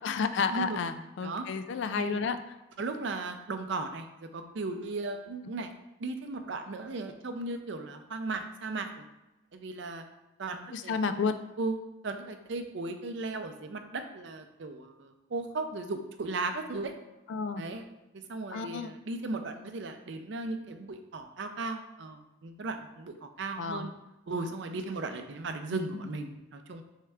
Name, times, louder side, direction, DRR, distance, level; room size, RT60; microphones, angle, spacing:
voice 1, 0.0-2.4 10.7-11.3 17.3-17.6 18.5-18.9 23.6-23.9 25.9-26.1, left 5 dB, 60° left, 10 dB, 0.3 m, -31 dB
voice 2, 2.8-5.7 6.0-8.9 9.5-10.0 10.4-11.2 11.6-16.9 17.6-17.9 18.3-23.9 24.3-26.8, right 3 dB, 60° right, 7 dB, 0.5 m, -36 dB
3.6 x 3.4 x 4.3 m, 0.99 s
head